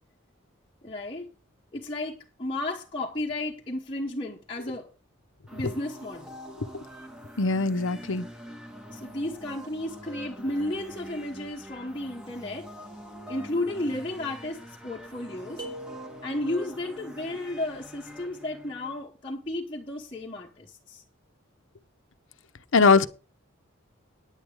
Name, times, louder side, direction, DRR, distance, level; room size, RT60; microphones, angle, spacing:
voice 1, 0.8-1.3 1.7-4.9 5.5-6.4 8.9-12.7 13.3-15.7 16.2-21.0, left 1 dB, 25° left, 1.1 m, -33 dB
sound 1, 5.5-19.0, equal, 5° right, 1.3 m, -45 dB
voice 2, 7.4-8.3 22.7-23.1, left 4 dB, 70° left, 0.8 m, -21 dB
sound 2, 15.6-16.7, right 1 dB, 20° right, 5.3 m, -41 dB
9.9 x 8.9 x 4.9 m
head